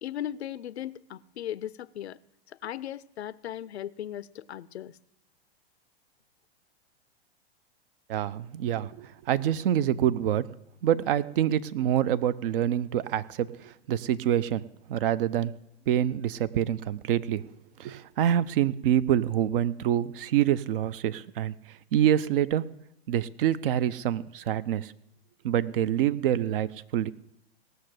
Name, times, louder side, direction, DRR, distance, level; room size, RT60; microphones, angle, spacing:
voice 1, 0.0-2.2 2.6-4.9, left 11 dB, 85° left, 0.6 m, -37 dB
voice 2, 8.1-10.5 10.8-14.6 14.9-15.5 15.9-17.4 17.8-21.5 21.9-22.7 23.1-24.9 25.4-27.1, right 10 dB, 55° right, 0.7 m, -26 dB
17.5 x 6.7 x 7.7 m
hypercardioid pair, 115°, 32 cm